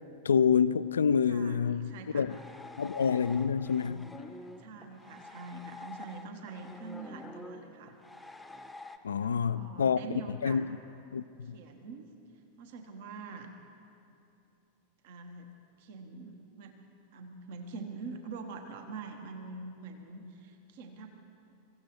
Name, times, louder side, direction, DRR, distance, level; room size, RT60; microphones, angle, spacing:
voice 1, 0.3-2.3 2.8-4.1 9.0-10.0 10.4-10.8 11.1-11.5, left 6 dB, 70° left, 0.3 m, -27 dB
voice 2, 1.3-2.3 4.6-7.9 9.2-10.6 11.5-12.1 12.6-13.5 15.0-15.5 15.8-16.8 17.1-21.1, right 4 dB, 50° right, 1.2 m, -44 dB
sound 1, 2.3-9.0, left 2 dB, 5° left, 0.8 m, -47 dB
23.5 x 15.5 x 3.1 m
figure-of-eight pair, 90°, 0 cm